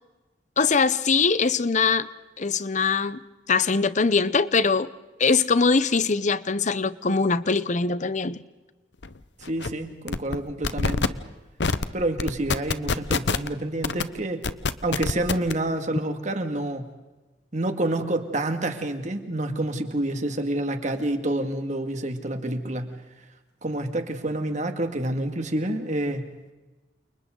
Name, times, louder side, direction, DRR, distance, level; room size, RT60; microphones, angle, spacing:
voice 1, 0.6-2.1 2.4-3.2 3.5-4.9 5.2-8.4, left 4 dB, 40° left, 0.8 m, -22 dB
sound 1, 9.0-9.1 9.4-9.7 10.1-10.4 10.6-11.1 11.6-11.9 12.2-13.5 13.8-14.0 14.4-15.5, left 4 dB, 75° left, 0.9 m, -24 dB
voice 2, 9.5-11.2 11.9-14.4 14.8-16.9 17.5-23.0 23.6-26.2, right 1 dB, 40° right, 2.2 m, -28 dB
29.5 x 29.0 x 3.9 m
head